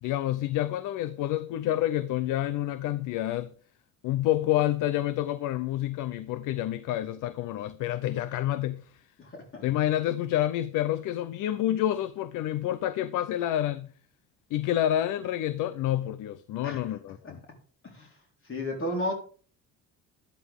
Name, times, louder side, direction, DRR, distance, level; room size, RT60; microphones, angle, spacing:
voice 1, 0.0-3.5 4.0-8.9 9.6-13.9 14.5-17.4, left 13 dB, 90° left, 0.7 m, -28 dB
voice 2, 9.2-9.6 16.6-16.8 17.2-17.3 17.8-18.2 18.4-19.1, left 1 dB, 40° left, 4.2 m, -33 dB
12.0 x 11.5 x 3.7 m
cardioid pair, 105°, 30 cm